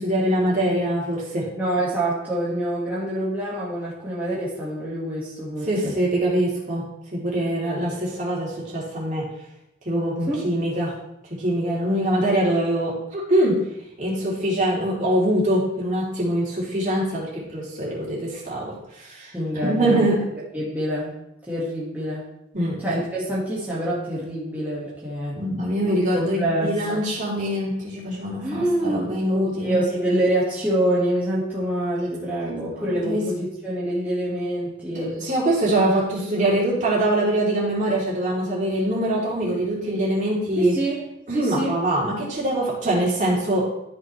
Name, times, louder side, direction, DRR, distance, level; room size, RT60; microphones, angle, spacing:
voice 1, 0.0-1.4 5.7-6.8 7.1-9.2 9.8-10.9 11.4-13.6 14.0-19.3 19.6-20.2 22.5-22.8 25.3-29.8 32.4-33.2 34.9-40.7 41.3-43.7, right 1 dB, 40° right, -6 dB, 3.3 m, -23 dB
voice 2, 1.6-5.9 10.3-10.5 19.3-20.1 20.5-21.1 21.5-22.2 22.8-25.4 25.8-27.0 28.4-35.2 40.6-41.0 41.3-41.7, right 1 dB, 10° right, -9 dB, 1.8 m, -26 dB
13.0 x 6.1 x 3.3 m, 0.84 s
head